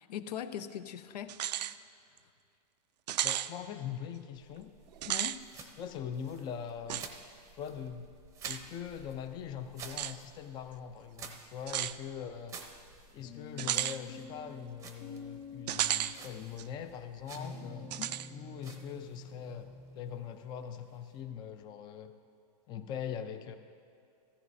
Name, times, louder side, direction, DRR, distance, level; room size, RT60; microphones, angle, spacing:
voice 1, 0.0-1.7 5.1-5.4 18.0-18.1, left 9 dB, 75° left, 11 dB, 0.7 m, -41 dB
sound 1, 1.3-1.7 2.2-2.3 3.1-3.5 4.9-5.4 6.9-7.1 8.4-8.6 9.9-10.1 11.7-12.0 13.6-14.0 15.7-16.1 16.6-16.7 17.9-18.3, right 12 dB, 80° right, 0.4 m, -33 dB
voice 2, 3.2-4.7 5.6-7.0 7.6-8.1 8.5-12.6 13.1-17.9 18.3-19.7 19.9-22.1 22.7-23.6, left 8 dB, 20° left, 9 dB, 0.5 m, -42 dB
sound 2, 4.4-21.6, right 5 dB, 15° right, 0.7 m, -53 dB
sound 3, 13.2-20.2, left 3 dB, 40° left, 2.7 m, -49 dB
15.0 x 14.0 x 2.7 m, 2.4 s
supercardioid pair, 150°, 21 cm